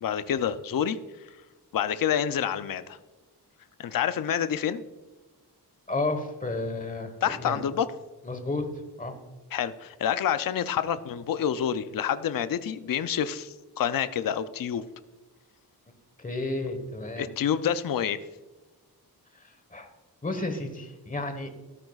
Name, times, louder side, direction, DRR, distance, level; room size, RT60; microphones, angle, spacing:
voice 1, 0.0-1.0 1.7-3.0 3.8-4.8 7.2-7.9 9.5-14.8 17.2-18.2, left 9 dB, 60° left, 12 dB, 0.5 m, -28 dB
voice 2, 5.9-7.6 8.2-8.7 9.0-9.1 16.2-17.3 19.7-19.9 20.2-21.5, left 2 dB, 20° left, 7 dB, 1.2 m, -32 dB
13.5 x 12.5 x 2.4 m, 1.2 s
wide cardioid pair, 150°, 39 cm